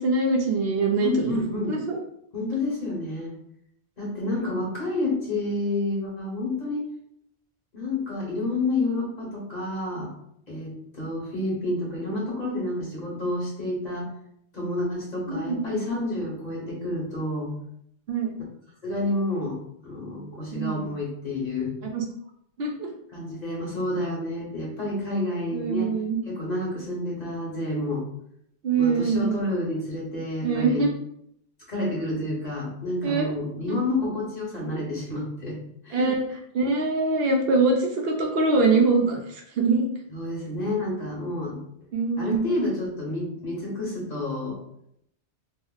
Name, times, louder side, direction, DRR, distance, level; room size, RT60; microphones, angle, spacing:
voice 1, 0.0-1.4 1.7-2.0 15.3-15.6 18.1-18.4 20.5-20.9 21.9-22.0 22.6-22.9 25.5-26.2 28.6-29.4 30.4-30.9 33.0-33.3 33.7-33.8 35.9-36.2 36.5-39.9 41.9-42.7, right 3 dB, 65° right, 0 dB, 0.7 m, -23 dB
voice 2, 1.0-1.7 2.3-3.3 4.0-6.8 7.7-10.1 10.5-14.1 14.5-17.5 18.8-19.5 19.8-21.7 23.1-25.9 26.3-28.0 28.8-30.8 31.7-35.6 35.8-36.1 40.1-41.6 42.2-44.6, left 2 dB, 40° left, -5 dB, 1.1 m, -29 dB
2.9 x 2.0 x 3.9 m, 0.72 s
omnidirectional pair, 1.1 m